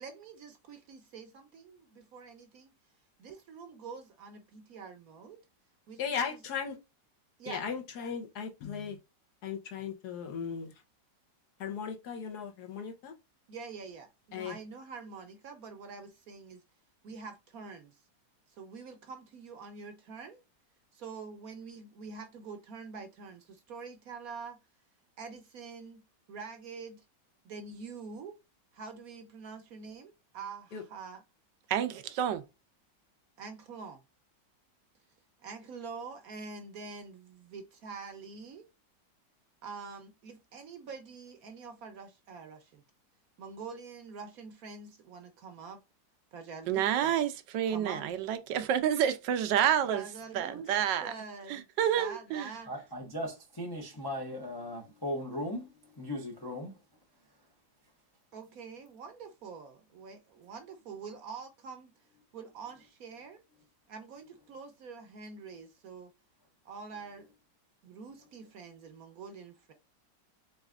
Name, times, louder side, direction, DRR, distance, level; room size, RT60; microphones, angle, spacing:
voice 1, 0.0-2.7 3.2-5.4 5.9-6.4 7.4-7.6 13.5-16.6 17.0-18.0 18.5-20.4 20.9-24.6 25.2-26.0 26.3-27.0 27.4-28.4 28.7-31.2 33.4-34.0 35.4-38.7 39.6-42.8 43.4-45.8 46.3-47.1 47.7-48.0 49.9-50.7 51.0-51.7 51.9-52.7 58.3-61.9 62.3-63.4 63.9-66.1 66.6-67.3 67.8-69.7, right 5 dB, 65° right, 1.0 m, -45 dB
voice 2, 6.0-6.8 7.5-9.0 9.4-10.7 11.6-13.1 14.3-14.6 30.7-30.8, left 6 dB, 65° left, 1.3 m, -37 dB
voice 3, 31.7-32.4 46.7-50.0 50.3-51.1 51.5-52.5, right 9 dB, 80° right, 1.2 m, -29 dB
voice 4, 52.7-56.8, left 1 dB, 30° left, 0.4 m, -38 dB
4.1 x 3.6 x 2.4 m
omnidirectional pair, 2.0 m